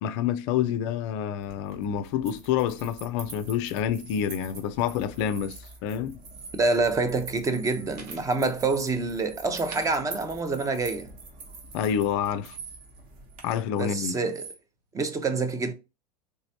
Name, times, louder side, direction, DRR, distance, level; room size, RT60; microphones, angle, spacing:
voice 1, 0.0-6.2 11.7-12.6 13.4-14.2, left 9 dB, 45° left, 0.4 m, -28 dB
sound 1, 1.4-13.4, right 3 dB, 40° right, 1.1 m, -47 dB
sound 2, 3.8-4.5 5.1-5.9 6.2-6.8 7.1-13.0 13.3-14.6, right 5 dB, 75° right, 1.0 m, -46 dB
voice 2, 6.6-11.1 13.8-14.4 14.9-15.7, right 3 dB, 15° right, 0.5 m, -26 dB
3.3 x 3.0 x 2.8 m
hypercardioid pair, 95°, 21 cm